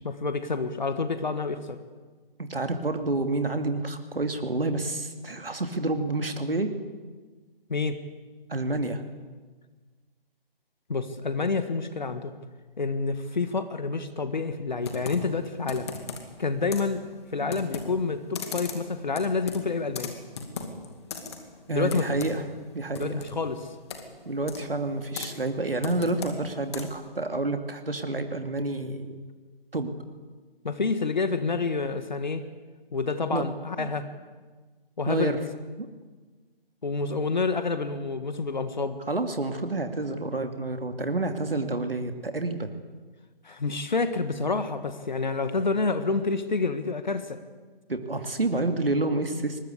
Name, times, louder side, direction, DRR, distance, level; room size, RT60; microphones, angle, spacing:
voice 1, 0.0-1.8 7.7-8.0 10.9-12.3 12.8-15.9 16.4-17.0 17.3-20.1 21.7-22.2 23.0-23.7 30.6-32.4 32.9-34.1 35.0-35.4 36.8-39.0 43.4-47.4, left 4 dB, 50° left, 10 dB, 1.6 m, -28 dB
voice 2, 2.5-6.7 8.5-9.0 17.4-17.5 21.7-22.4 22.7-23.2 24.3-29.2 29.7-29.9 33.3-33.4 33.8-33.9 35.1-35.4 35.8-35.9 39.1-42.7 47.9-49.6, right 2 dB, 70° right, 6 dB, 2.5 m, -29 dB
Computer keyboard, 14.8-27.1, left 5 dB, 25° left, 2.5 m, -39 dB
25.0 x 21.5 x 8.4 m, 1.4 s
figure-of-eight pair, 150°, 30 cm